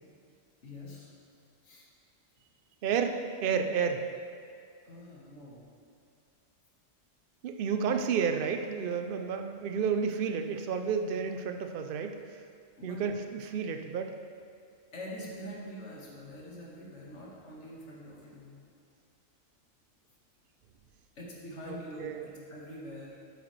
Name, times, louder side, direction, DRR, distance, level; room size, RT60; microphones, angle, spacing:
voice 1, 0.6-1.1 1.6-1.8 4.9-5.6 12.8-13.0 14.9-18.5 21.2-23.2, equal, 60° left, -4 dB, 1.7 m, -44 dB
voice 2, 2.8-4.0 7.4-12.2 12.8-14.1 21.7-22.3, right 6 dB, 60° right, 6 dB, 0.6 m, -31 dB
8.8 x 8.2 x 3.2 m, 2.3 s
omnidirectional pair, 1.4 m